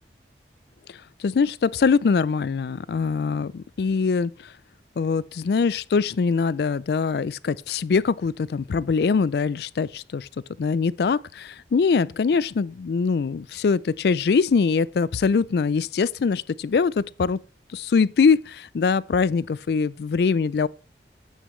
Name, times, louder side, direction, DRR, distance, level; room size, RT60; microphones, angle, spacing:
voice 1, 1.2-4.3 5.0-10.3 10.6-17.4 17.7-20.7, left 5 dB, 60° left, 0.3 m, -23 dB
9.2 x 8.2 x 3.1 m
head